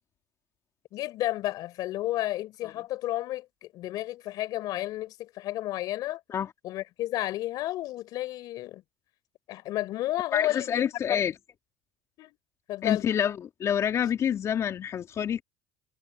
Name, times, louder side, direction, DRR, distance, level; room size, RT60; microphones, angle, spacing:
voice 1, 0.9-6.2 6.6-8.8 9.5-10.8 11.1-11.2 12.2-12.4 12.7-13.0, left 15 dB, 60° left, 4.4 m, -32 dB
voice 2, 10.3-11.3 12.8-15.4, left 9 dB, 40° left, 3.1 m, -27 dB
supercardioid pair, 90°, 7 cm